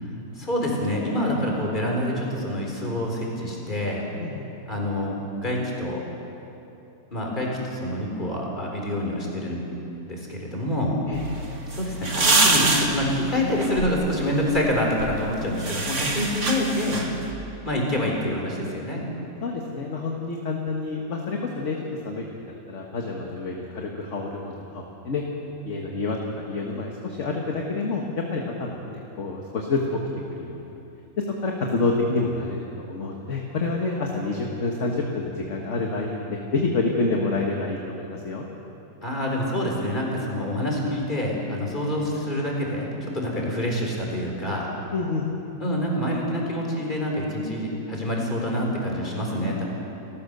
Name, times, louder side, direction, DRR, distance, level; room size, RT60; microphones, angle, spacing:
voice 1, 0.4-4.0 4.7-6.0 7.1-9.6 10.1-11.0 11.7-17.0 17.6-19.0 39.0-44.7 45.6-49.7, left 1 dB, 30° left, -2 dB, 4.4 m, -26 dB
sound 1, 11.1-17.3, right 2 dB, 55° right, 2.2 m, -26 dB
voice 2, 19.4-21.8 22.0-25.2 25.7-30.0 30.3-30.7 31.4-38.4 44.9-45.3, left 3 dB, 55° left, 0 dB, 1.9 m, -28 dB
29.5 x 14.0 x 6.8 m, 2.9 s
omnidirectional pair, 1.6 m